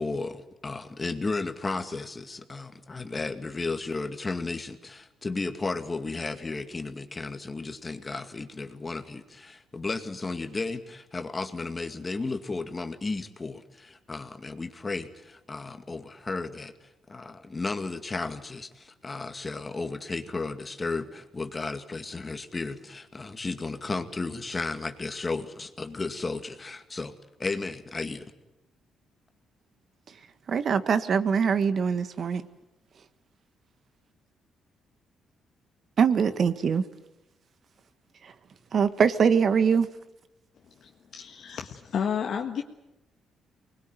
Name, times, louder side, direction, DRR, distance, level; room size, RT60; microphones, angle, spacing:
voice 1, 0.0-27.1 27.4-28.3, left 3 dB, 25° left, 2.1 m, -34 dB
voice 2, 30.5-32.5 36.0-36.8 38.2-38.3 38.7-39.9, right 6 dB, 55° right, 1.6 m, -23 dB
voice 3, 40.8-42.6, left 7 dB, 65° left, 1.6 m, -31 dB
24.0 x 20.5 x 9.3 m
cardioid pair, 90°, 0 cm